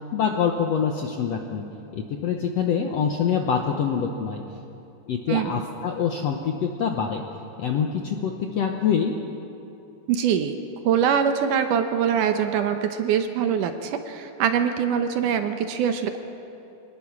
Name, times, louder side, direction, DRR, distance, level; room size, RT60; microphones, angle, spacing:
voice 1, 0.1-1.6 1.9-4.4 5.1-7.2 7.6-9.1, left 7 dB, 70° left, 3 dB, 1.6 m, -25 dB
voice 2, 5.3-5.6 10.1-10.6 10.8-16.2, right 8 dB, 70° right, 7 dB, 2.2 m, -23 dB
24.5 x 19.5 x 6.1 m, 2.8 s
omnidirectional pair, 4.2 m